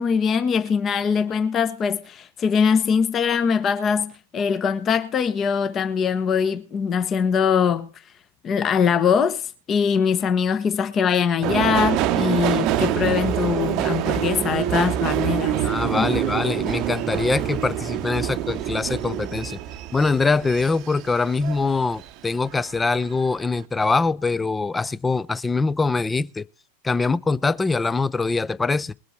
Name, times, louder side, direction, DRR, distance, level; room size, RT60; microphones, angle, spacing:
voice 1, 0.0-7.9 8.4-15.6 16.0-16.1, left 6 dB, 25° left, 1.1 m, -22 dB
Subway metro underground, 11.4-22.1 22.5-23.2 23.5-23.6, right 12 dB, 40° right, 0.8 m, -26 dB
voice 2, 15.6-19.6 19.9-26.4 26.8-28.9, left 3 dB, 10° left, 0.5 m, -23 dB
21.0 x 7.7 x 4.3 m
figure-of-eight pair, 90°, 0 cm